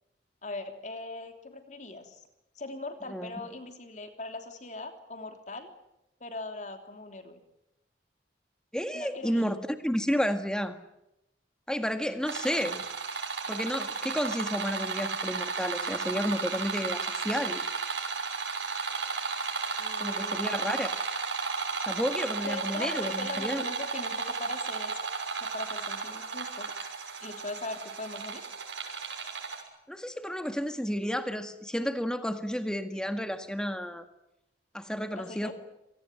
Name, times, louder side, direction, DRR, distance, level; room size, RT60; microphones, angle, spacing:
voice 1, 0.4-2.2 2.5-5.7 6.2-7.4 8.9-9.6 19.8-20.9 22.4-25.1 25.4-26.7 27.2-28.4 35.1-35.5, left 2 dB, 40° left, 6 dB, 3.2 m, -40 dB
voice 2, 8.7-10.8 11.7-12.8 13.5-17.7 20.0-21.0 21.8-23.6 29.9-34.0 34.7-35.5, equal, 5° left, 8 dB, 1.8 m, -31 dB
sound 1, 12.2-29.6, right 4 dB, 85° right, 6.0 m, -34 dB
26.5 x 19.0 x 9.1 m, 0.87 s
head